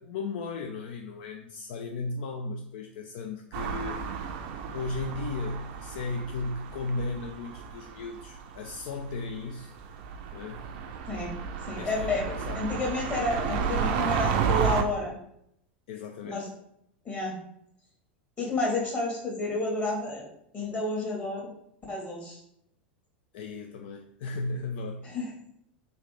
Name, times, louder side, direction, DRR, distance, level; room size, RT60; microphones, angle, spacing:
voice 1, 0.0-4.0 4.7-9.7 10.3-10.7 11.8-12.7 15.9-16.5 23.3-25.1, left 3 dB, 60° left, 2 dB, 0.3 m, -35 dB
sound 1, 3.5-14.8, right 7 dB, 55° right, 0.4 m, -32 dB
voice 2, 11.7-12.3 12.5-15.1 16.2-16.5 17.0-17.4 18.4-20.2 20.5-21.5 21.9-22.4 25.0-25.3, left 2 dB, 25° left, -2 dB, 1.4 m, -30 dB
3.2 x 2.6 x 3.2 m, 0.73 s
figure-of-eight pair, 90°, 6 cm